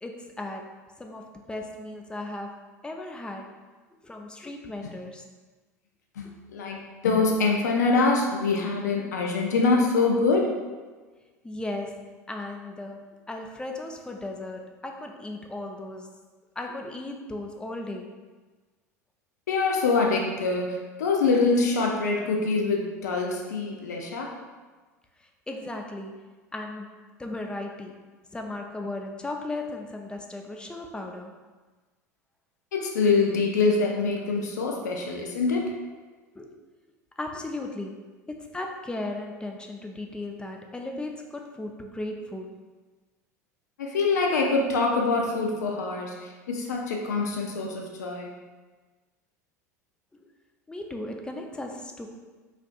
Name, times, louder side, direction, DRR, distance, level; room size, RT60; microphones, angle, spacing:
voice 1, 0.0-3.6 4.0-5.2 6.2-6.3 11.4-16.1 16.6-18.2 25.2-26.3 26.5-27.9 28.3-31.4 36.3-36.5 37.2-42.6 50.1-50.3 50.7-52.1, left 2 dB, 10° left, 2 dB, 0.4 m, -36 dB
voice 2, 6.5-10.5 19.5-24.3 32.7-35.7 43.8-48.3, left 3 dB, 75° left, 1 dB, 0.4 m, -24 dB
4.1 x 2.5 x 2.3 m, 1.3 s
figure-of-eight pair, 75°, 9 cm